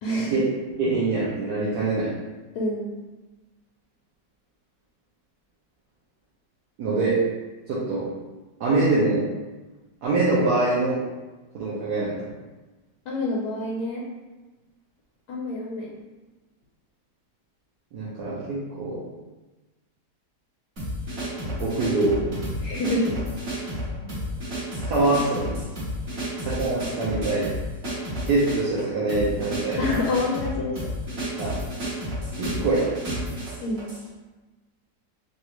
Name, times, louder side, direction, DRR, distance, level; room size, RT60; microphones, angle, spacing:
voice 1, 0.0-0.4 2.5-2.9 13.1-14.0 15.3-15.9 22.6-23.2 26.1-26.4 29.8-30.9 33.6-33.9, left 1 dB, 80° left, -4 dB, 1.2 m, -27 dB
voice 2, 0.8-2.1 6.8-7.2 7.7-8.1 8.6-9.3 10.0-11.0 11.5-12.3 17.9-19.0 21.4-22.2 24.8-25.6 26.5-27.5 28.3-29.8 31.4-31.5 32.4-32.9, right 2 dB, 70° right, -8 dB, 1.3 m, -24 dB
sound 1, 20.8-34.0, equal, 40° right, 1.7 m, -31 dB
4.1 x 2.4 x 2.9 m, 1.2 s
omnidirectional pair, 1.9 m